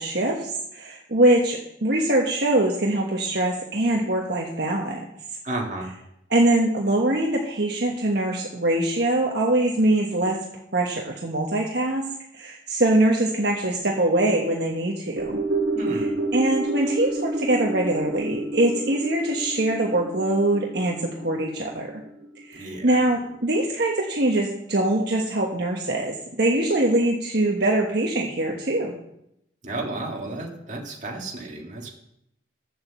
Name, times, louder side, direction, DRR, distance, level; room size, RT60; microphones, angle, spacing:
voice 1, 0.0-5.0 6.3-10.4 10.7-12.0 12.3-15.4 15.8-21.9 22.5-28.9, right 1 dB, 60° right, -1 dB, 1.3 m, -23 dB
voice 2, 5.4-5.9 15.7-16.1 22.5-23.0 29.6-31.9, right 2 dB, 40° right, 0 dB, 2.0 m, -32 dB
sound 1, 15.2-23.6 23.9-24.0, right 2 dB, 80° right, 1.5 m, -30 dB
9.4 x 7.5 x 7.3 m, 0.79 s
head